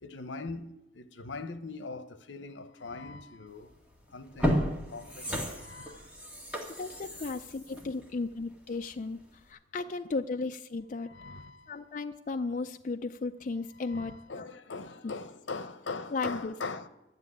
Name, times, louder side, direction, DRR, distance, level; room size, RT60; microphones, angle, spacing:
voice 1, 0.0-3.7 4.1-6.0 11.0-11.7 13.7-16.9, left 3 dB, 80° left, 0.9 m, -41 dB
sound 1, 3.6-3.8 4.2-8.9 9.3-9.4, equal, 5° right, 1.8 m, -33 dB
voice 2, 6.8-9.2 9.5-11.1 11.7-14.4 15.0-15.1 16.1-16.5, left 3 dB, 40° left, 0.4 m, -35 dB
12.0 x 7.0 x 9.8 m
head